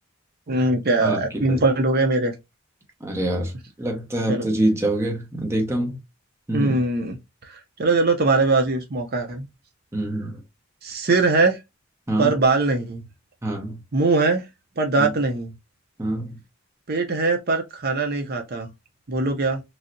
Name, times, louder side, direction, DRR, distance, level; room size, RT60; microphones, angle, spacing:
voice 1, 0.5-2.3 4.3-4.5 6.5-7.2 7.5-9.5 10.8-11.6 12.2-13.0 13.9-14.4 14.8-15.5 16.9-18.7 19.1-19.6, right 3 dB, 50° right, 0.6 m, -21 dB
voice 2, 1.0-1.6 3.0-6.0 6.5-6.8 9.9-10.4 12.1-12.3 13.4-13.8 15.0-15.1 16.0-16.4, right 1 dB, 15° right, 0.7 m, -25 dB
3.1 x 2.7 x 2.6 m
head